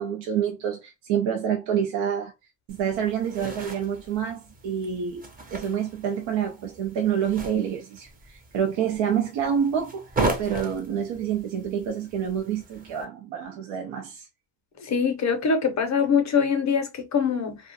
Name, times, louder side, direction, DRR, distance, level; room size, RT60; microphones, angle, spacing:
voice 1, 0.0-2.3 2.7-5.3 5.5-10.1 10.4-14.3, right 8 dB, 90° right, 0.6 m, -27 dB
sound 1, 2.7-13.0, right 2 dB, 20° right, 0.5 m, -36 dB
voice 2, 14.8-17.6, left 6 dB, 40° left, 0.5 m, -23 dB
2.3 x 2.2 x 2.5 m
cardioid pair, 120°, 43 cm